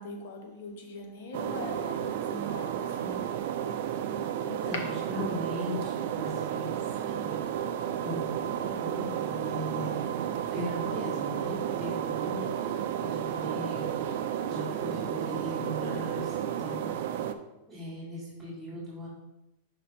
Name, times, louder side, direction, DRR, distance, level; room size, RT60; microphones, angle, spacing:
voice 1, 0.0-3.3 4.7-5.0 9.7-9.8, left 2 dB, 65° left, 1.2 m, -41 dB
sound 1, 1.3-17.3, right 9 dB, 60° right, 0.4 m, -32 dB
voice 2, 4.4-4.8 5.1-6.8 7.1-7.4 8.0-8.2 8.6-10.2 10.5-14.1 14.5-16.9 17.7-19.1, equal, 5° right, 2.3 m, -38 dB
5.1 x 4.3 x 4.4 m
supercardioid pair, 145°, 0 cm